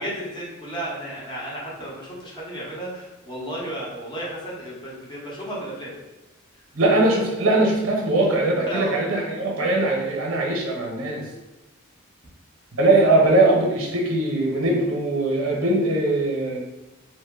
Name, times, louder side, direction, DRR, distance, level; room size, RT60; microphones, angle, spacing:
voice 1, 0.0-5.9 8.7-9.0, right 1 dB, 20° left, -5 dB, 0.9 m, -33 dB
voice 2, 6.7-11.3 12.8-16.6, right 2 dB, 90° right, 0 dB, 0.8 m, -21 dB
2.9 x 2.1 x 3.5 m, 1.1 s
head